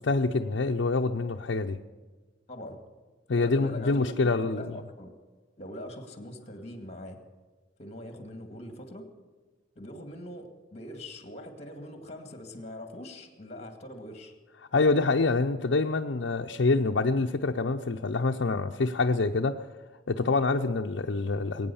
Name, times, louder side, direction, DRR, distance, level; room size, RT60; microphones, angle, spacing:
voice 1, 0.0-1.8 3.3-4.8 14.7-19.7 20.1-21.7, left 3 dB, 75° left, 2 dB, 0.6 m, -26 dB
voice 2, 2.5-2.8 3.3-5.1 5.6-7.2 7.8-9.1 9.8-14.3, equal, 35° left, 5 dB, 2.1 m, -42 dB
21.0 x 9.3 x 7.0 m, 1.4 s
head